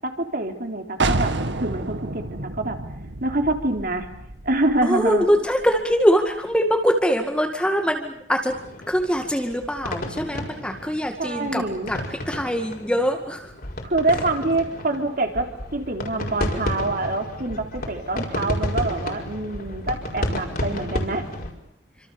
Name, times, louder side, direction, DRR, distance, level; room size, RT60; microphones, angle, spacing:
voice 1, 0.0-1.3 1.6-2.8 3.2-4.1 4.4-5.3 11.2-11.9 13.8-21.3, right 2 dB, 50° right, 5 dB, 3.8 m, -26 dB
sound 1, 1.0-6.5, right 2 dB, 65° right, 2.2 m, -30 dB
voice 2, 4.8-8.6 8.9-13.5, equal, 5° left, 4 dB, 2.1 m, -23 dB
sound 2, 8.5-21.5, left 1 dB, 50° left, 5.1 m, -32 dB
28.0 x 26.0 x 7.2 m, 0.75 s
head